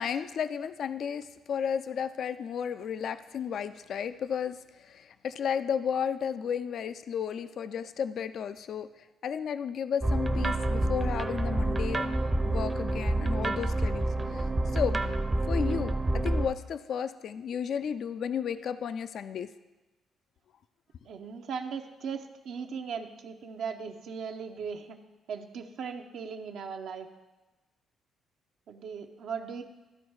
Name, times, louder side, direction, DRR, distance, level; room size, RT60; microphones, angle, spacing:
voice 1, 0.0-4.6 4.9-8.9 9.2-12.2 12.4-14.1 14.3-15.0 15.5-19.5, left 7 dB, 65° left, 12 dB, 0.3 m, -33 dB
sound 1, 10.0-16.5, right 2 dB, 20° right, 0.6 m, -28 dB
voice 2, 21.1-25.0 25.3-27.1 28.7-29.6, right 6 dB, 70° right, 5 dB, 0.6 m, -38 dB
12.5 x 4.3 x 4.7 m, 1.1 s
cardioid pair, 90°, 0 cm